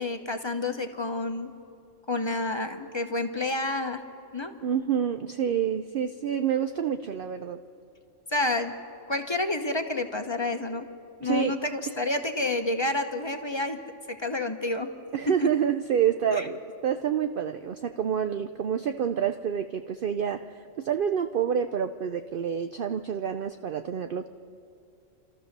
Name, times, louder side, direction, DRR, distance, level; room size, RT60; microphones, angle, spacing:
voice 1, 0.0-1.6 2.1-4.0 4.3-4.5 8.3-8.7 9.1-10.8 11.2-13.8 14.1-14.9 15.4-15.5 16.3-16.5, left 2 dB, 25° left, 6 dB, 0.9 m, -29 dB
voice 2, 4.6-7.6 11.2-11.6 15.1-16.6 16.8-24.3, right 8 dB, 55° right, 8 dB, 0.6 m, -28 dB
29.0 x 13.5 x 6.7 m, 2.6 s
omnidirectional pair, 1.3 m